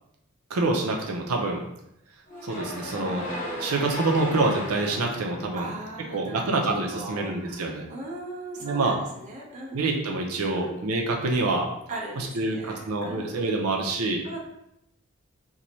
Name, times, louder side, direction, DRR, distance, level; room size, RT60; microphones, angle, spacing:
voice 1, 0.5-1.6 2.4-3.3 3.6-5.7 6.1-7.9 8.6-9.0 9.7-11.7 12.2-14.2, right 3 dB, 85° right, 1 dB, 0.5 m, -26 dB
sound 1, 2.3-6.5, equal, 35° left, 0.8 m, -35 dB
voice 2, 5.5-9.8 10.5-10.7 11.9-14.0 14.2-14.4, right 1 dB, 35° right, -3 dB, 0.6 m, -39 dB
3.0 x 2.2 x 3.9 m, 0.81 s
head